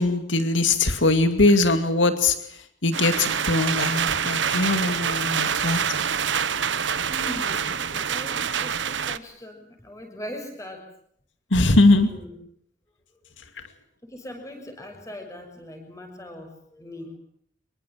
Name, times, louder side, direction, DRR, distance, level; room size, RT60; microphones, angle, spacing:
voice 1, 0.0-2.4 2.8-5.8 11.5-12.1, left 2 dB, 85° left, 9 dB, 2.4 m, -21 dB
sound 1, 2.9-9.2, right 7 dB, 80° right, 1.2 m, -26 dB
voice 2, 7.1-10.9 12.0-12.3 14.0-17.2, left 1 dB, 15° left, 4 dB, 6.4 m, -40 dB
26.0 x 23.0 x 7.5 m, 0.68 s
head